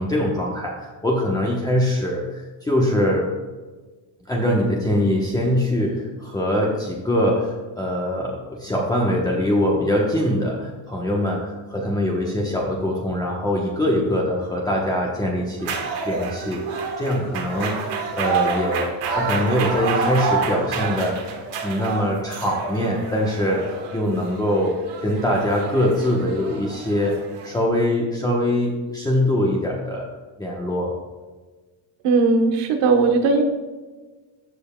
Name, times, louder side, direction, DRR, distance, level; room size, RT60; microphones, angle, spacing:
voice 1, 0.0-3.3 4.3-15.7 16.0-16.6 17.0-17.8 18.2-21.2 21.6-24.7 25.0-30.1 30.4-30.9, left 1 dB, 10° left, -3 dB, 1.0 m, -23 dB
sound 1, 15.6-27.6, right 5 dB, 65° right, 1.5 m, -28 dB
voice 2, 32.0-33.4, right 4 dB, 80° right, 4 dB, 1.3 m, -18 dB
13.5 x 5.3 x 2.3 m, 1.3 s
cardioid pair, 120°, 43 cm